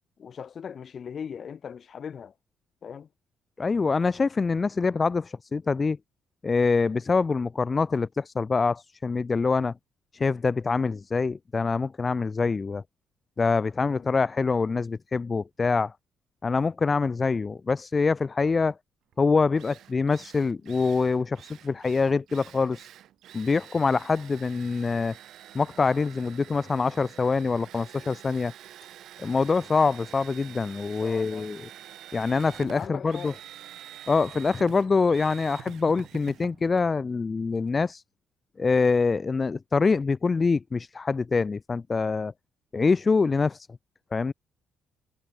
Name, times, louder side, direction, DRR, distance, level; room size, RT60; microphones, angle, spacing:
voice 1, 0.2-2.3 2.8-3.1 13.9-14.1 31.0-31.5 32.7-33.4, left 7 dB, 55° left, 3.9 m, -39 dB
voice 2, 3.6-6.0 6.4-9.7 10.1-12.8 13.4-15.9 16.4-18.7 19.2-22.9 23.3-25.2 25.5-28.5 29.2-31.7 32.1-33.3 34.1-38.0 38.6-42.3 42.7-43.7 44.1-44.3, left 4 dB, 35° left, 0.6 m, -25 dB
Drill, 19.1-19.2 19.6-37.7, right 11 dB, 75° right, 1.4 m, -47 dB
supercardioid pair, 70°, 0 cm